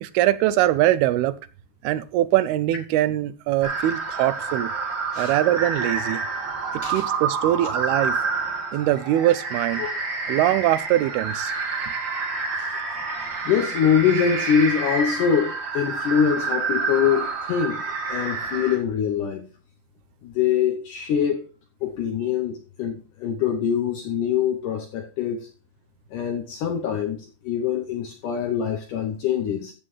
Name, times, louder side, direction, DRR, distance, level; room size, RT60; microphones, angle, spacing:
voice 1, 0.0-1.4 1.8-4.7 5.2-6.2 6.9-8.2 8.7-9.9 10.3-11.5, right 14 dB, 80° right, 2.5 m, -22 dB
sound 1, 3.6-18.8, right 4 dB, 40° right, 1.9 m, -28 dB
voice 2, 13.5-19.5 20.2-21.5 21.8-25.5 26.1-29.7, left 8 dB, 75° left, 1.9 m, -24 dB
14.0 x 7.5 x 3.2 m
omnidirectional pair, 4.6 m